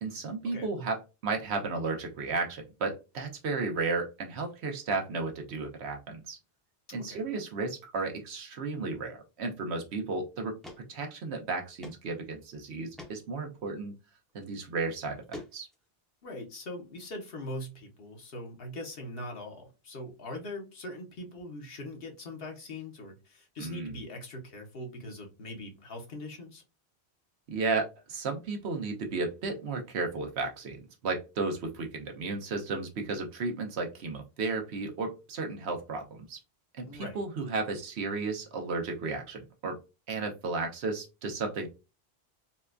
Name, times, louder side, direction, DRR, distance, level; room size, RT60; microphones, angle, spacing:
voice 1, 0.0-6.4 6.9-10.6 10.9-13.9 14.3-15.7 23.6-24.0 27.5-36.4 36.8-39.8 40.1-41.7, right 3 dB, 80° right, 4 dB, 1.0 m, -34 dB
sound 1, 10.0-10.1 10.6-10.8 11.1-11.2 11.8-12.0 12.4-12.5 13.0-13.1 14.3-14.4 15.0-15.8, left 1 dB, ahead, 0.5 m, -45 dB
voice 2, 16.2-26.6 36.8-37.2, left 1 dB, 65° left, 2 dB, 1.0 m, -41 dB
4.1 x 2.2 x 2.4 m, 0.28 s
omnidirectional pair, 1.1 m